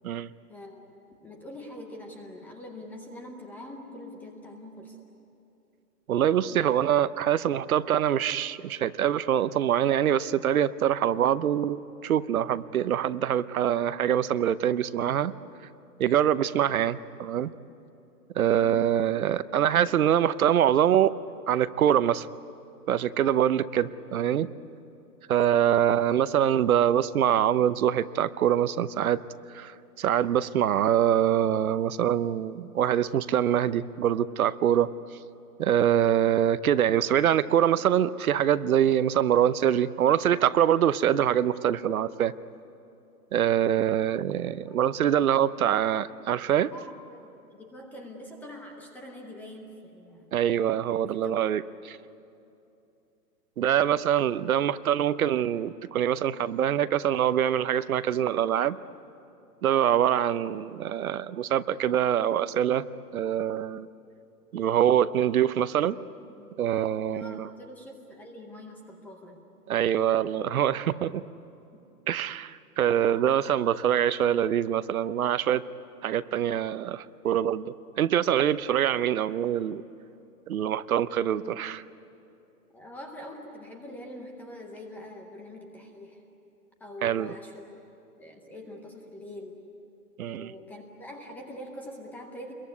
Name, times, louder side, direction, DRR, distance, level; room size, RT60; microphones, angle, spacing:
voice 1, 0.5-0.8 1.2-5.0 18.6-18.9 44.7-44.8 45.2-45.4 46.7-50.3 51.1-51.3 66.3-66.5 67.1-69.4 71.7-71.8 72.1-72.3 81.1-81.6 82.7-86.2 86.8-87.5 88.2-89.6 90.4-92.5, left 1 dB, 5° left, 2 dB, 0.7 m, -44 dB
voice 2, 6.1-15.3 16.0-17.5 18.4-21.1 21.5-22.3 22.9-24.5 25.3-29.2 29.5-34.9 35.6-42.3 43.3-46.7 50.3-52.0 53.6-58.8 59.6-62.8 63.1-63.9 64.5-66.0 66.6-67.5 69.7-71.2 72.1-75.6 76.0-79.8 80.5-81.8 87.0-87.3 90.2-90.5, right 10 dB, 60° right, 15 dB, 0.8 m, -24 dB
27.5 x 22.5 x 9.6 m, 2.8 s
hypercardioid pair, 155°, 47 cm